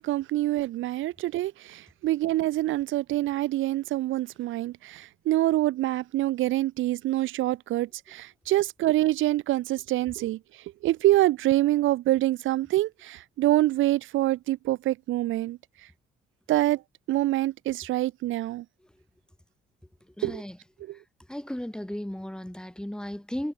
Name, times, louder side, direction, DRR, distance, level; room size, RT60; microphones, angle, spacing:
voice 1, 0.0-15.6 16.5-16.8 17.1-18.6 20.2-20.4 20.8-21.0, right 15 dB, 80° right, 0.7 m, -26 dB
voice 2, 20.2-20.6 21.3-23.5, left 1 dB, 5° left, 1.5 m, -35 dB
cardioid pair, 90°, 20 cm